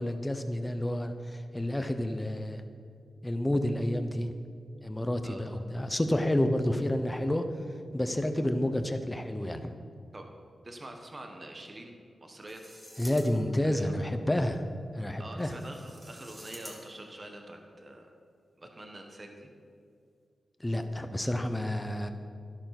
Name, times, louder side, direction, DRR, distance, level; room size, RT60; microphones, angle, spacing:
voice 1, 0.0-2.6 3.2-4.3 4.8-7.4 7.9-9.7 13.0-14.6 14.9-15.5 20.6-22.1, left 1 dB, 10° left, 8 dB, 0.9 m, -29 dB
voice 2, 10.6-11.9 12.2-12.6 13.6-13.9 15.2-18.1 18.6-19.5, right 1 dB, 25° right, 3 dB, 1.6 m, -45 dB
sound 1, 12.5-13.7 15.4-17.2, equal, 5° right, 1.7 m, -49 dB
13.0 x 11.5 x 6.1 m, 2.3 s
wide cardioid pair, 145°, 0 cm